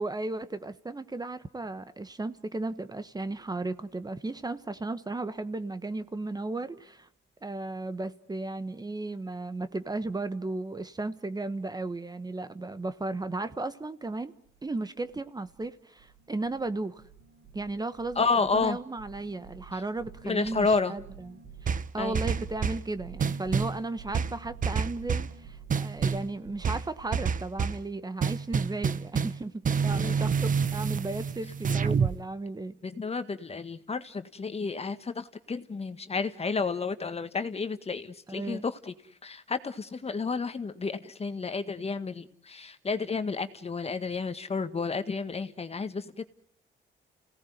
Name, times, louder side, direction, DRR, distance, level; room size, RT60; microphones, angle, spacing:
voice 1, 0.0-7.1 7.4-14.3 14.6-17.0 17.5-32.8 38.3-38.6, right 2 dB, 20° right, 12 dB, 1.3 m, -35 dB
sound 1, 14.4-14.7 15.0-15.7 16.0-16.7 17.0-27.2, right 6 dB, 60° right, 5.4 m, -49 dB
voice 2, 18.1-18.8 19.7-19.8 20.2-20.9 22.0-22.2 30.0-30.1 32.8-38.9 39.2-46.2, left 4 dB, 30° left, 11 dB, 1.7 m, -31 dB
sound 2, 21.7-22.9 23.2-23.8 24.1-25.3 25.7-26.3 26.6-27.8 28.2-29.4 29.6-32.2, right 6 dB, 40° right, 1.0 m, -28 dB
29.5 x 18.0 x 9.5 m, 0.71 s
cardioid pair, 90°, 20 cm